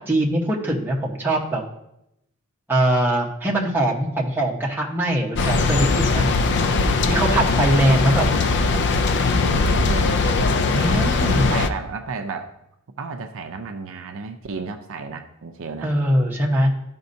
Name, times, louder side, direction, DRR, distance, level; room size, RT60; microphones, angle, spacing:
voice 1, 0.0-1.6 2.7-6.3 6.9-8.2 10.7-11.5 15.8-16.7, right 1 dB, 10° right, -2 dB, 1.0 m, -22 dB
sound 1, 5.3-11.7, left 3 dB, 50° left, 0.4 m, -20 dB
voice 2, 9.1-10.1 11.2-12.5 13.0-15.9, right 4 dB, 60° right, 6 dB, 0.5 m, -32 dB
13.0 x 5.3 x 2.7 m, 0.84 s
head